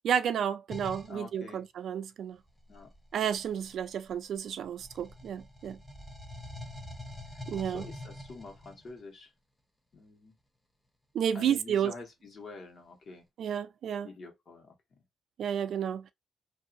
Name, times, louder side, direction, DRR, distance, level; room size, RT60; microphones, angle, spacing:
voice 1, 0.0-2.4 3.1-5.8 7.5-7.8 11.1-11.9 13.4-14.1 15.4-16.1, right 8 dB, 70° right, 0.4 m, -31 dB
sound 1, 0.7-1.2 2.5-4.4 4.8-8.9, left 1 dB, 10° left, 0.7 m, -45 dB
voice 2, 1.1-1.6 2.7-2.9 7.3-9.3 9.9-10.3 11.3-13.2 14.0-14.7, left 3 dB, 50° left, 1.3 m, -46 dB
2.7 x 2.5 x 2.5 m
cardioid pair, 115°, 0 cm